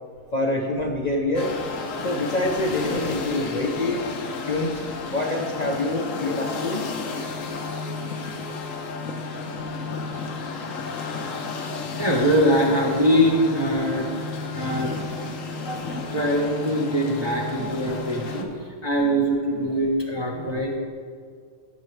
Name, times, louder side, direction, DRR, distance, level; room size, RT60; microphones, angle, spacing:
voice 1, 0.3-1.5 2.0-4.0 4.5-4.8 5.1-6.9, left 2 dB, 40° left, 0 dB, 0.7 m, -25 dB
sound 1, 1.3-18.4, left 4 dB, 75° left, 1.2 m, -32 dB
voice 2, 12.0-14.1 14.4-20.8, equal, 25° right, -1 dB, 0.6 m, -23 dB
13.5 x 6.7 x 3.3 m, 2.2 s
omnidirectional pair, 1.4 m